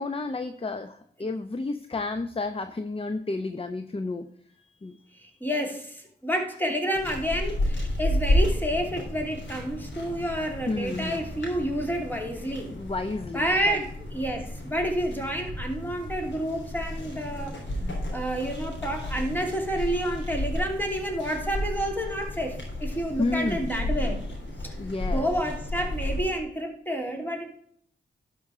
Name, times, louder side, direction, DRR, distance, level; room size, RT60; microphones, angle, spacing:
voice 1, 0.0-4.3 4.6-5.0 10.7-11.3 12.7-13.8 23.2-23.7 24.8-25.3, left 3 dB, 30° left, 9 dB, 0.8 m, -31 dB
voice 2, 5.2-12.7 13.3-17.6 18.1-24.2 24.6-24.7 25.1-27.5, equal, 10° left, 2 dB, 3.0 m, -29 dB
sound 1, 6.9-26.2, left 1 dB, 80° left, 3.4 m, -32 dB
12.0 x 5.5 x 4.9 m, 0.65 s
cardioid pair, 55°, 18 cm